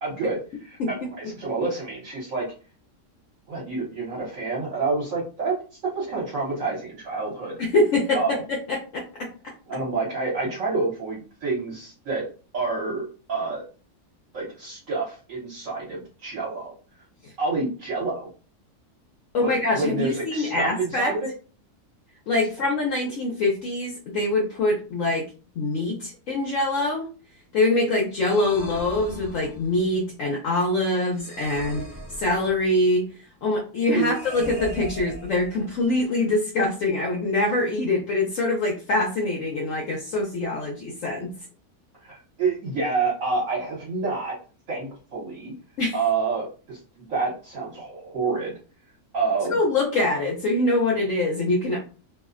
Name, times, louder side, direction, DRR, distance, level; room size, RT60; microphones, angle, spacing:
voice 1, 0.0-1.1 1.4-2.5 3.5-5.6 5.9-7.6 8.1-8.4 9.7-12.2 12.5-13.6 14.3-17.0 17.4-18.3 19.4-21.3 33.9-34.1 42.0-44.4 44.7-45.5 45.9-48.6 49.1-49.6, right 4 dB, 65° right, -5 dB, 1.1 m, -28 dB
voice 2, 7.6-9.5 17.2-17.3 19.3-21.1 22.3-25.3 25.6-27.1 27.5-31.8 32.2-33.1 33.4-41.3 45.8-46.0 49.5-51.8, left 2 dB, 65° left, -2 dB, 0.9 m, -24 dB
sound 1, 28.1-29.8 31.1-32.8 34.0-35.9, right 1 dB, 20° right, 0.4 m, -39 dB
2.6 x 2.0 x 2.4 m, 0.36 s
omnidirectional pair, 1.6 m